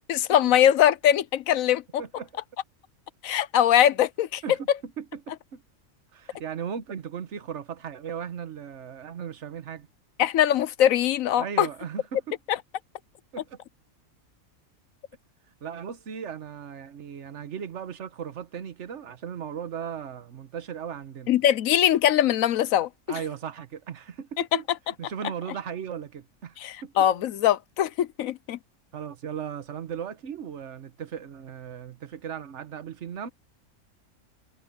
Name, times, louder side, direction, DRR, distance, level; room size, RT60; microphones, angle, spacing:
voice 1, 0.1-2.0 3.2-4.4 10.2-11.7 12.5-12.6 21.3-23.2 24.4-24.6 26.6-28.6, left 11 dB, 80° left, 1.1 m, -22 dB
voice 2, 4.8-5.6 6.1-9.9 11.4-12.4 13.3-13.6 15.6-21.3 23.1-24.6 25.0-27.1 28.9-33.3, right 8 dB, 60° right, 1.4 m, -37 dB
omnidirectional pair, 1.4 m